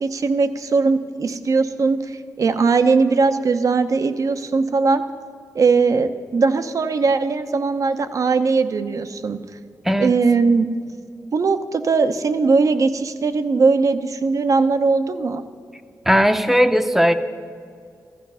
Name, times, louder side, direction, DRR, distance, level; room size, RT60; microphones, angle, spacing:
voice 1, 0.0-5.0 5.5-9.4 10.0-10.7 11.3-15.4, right 4 dB, 55° right, 9 dB, 0.8 m, -19 dB
voice 2, 16.1-17.1, equal, 5° right, 9 dB, 0.8 m, -17 dB
15.0 x 13.5 x 5.6 m, 2.3 s
wide cardioid pair, 95°, 7 cm